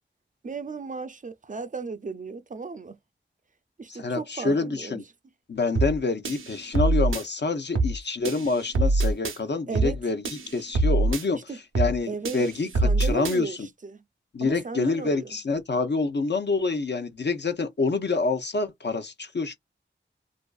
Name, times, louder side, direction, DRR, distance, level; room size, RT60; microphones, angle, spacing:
voice 1, 0.4-3.0 3.8-5.0 9.7-10.0 11.3-11.6 12.1-12.4 12.8-14.0 14.4-15.3, right 4 dB, 40° right, 0.4 m, -35 dB
voice 2, 3.9-5.0 5.5-10.2 10.5-11.5 11.8-12.7 13.0-13.7 14.3-19.5, left 3 dB, 60° left, 0.7 m, -27 dB
sound 1, 5.8-6.0 6.3-7.2 7.8-8.0 8.3-9.4 9.8-10.0 10.3-11.2 11.8-12.0 12.3-13.4, right 2 dB, 85° right, 0.6 m, -24 dB
2.5 x 2.5 x 2.3 m
cardioid pair, 45°, 20 cm